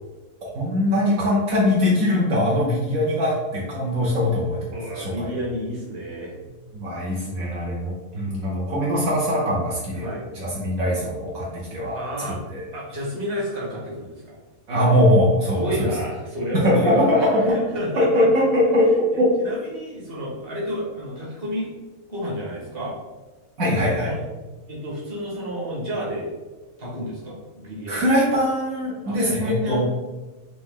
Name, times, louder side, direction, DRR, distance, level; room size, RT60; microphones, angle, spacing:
voice 1, 0.4-4.6 4.9-5.3 6.7-10.1 10.3-12.0 12.3-12.6 14.7-15.7 16.5-17.4 18.0-19.3 23.6-24.1 27.9-29.8, left 1 dB, 70° right, -5 dB, 1.4 m, -21 dB
voice 2, 4.7-6.4 10.0-10.2 11.9-12.4 12.7-14.3 15.5-18.4 19.1-21.7 22.1-23.0 23.8-24.2 24.7-26.3 26.8-28.1 29.0-29.8, equal, 40° right, -6 dB, 1.5 m, -31 dB
4.2 x 3.0 x 3.6 m, 1.2 s
omnidirectional pair, 1.5 m